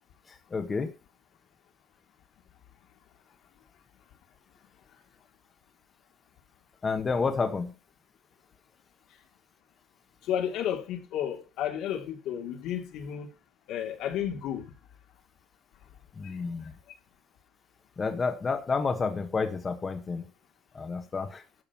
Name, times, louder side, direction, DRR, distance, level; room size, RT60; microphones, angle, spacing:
voice 1, 0.5-0.9 6.8-7.7 16.2-16.7 18.0-20.2 20.7-21.4, left 4 dB, 25° left, 1.3 m, -30 dB
voice 2, 10.3-13.3 13.7-14.6, left 9 dB, 80° left, 2.9 m, -32 dB
12.5 x 6.9 x 5.9 m
cardioid pair, 160°, 0 cm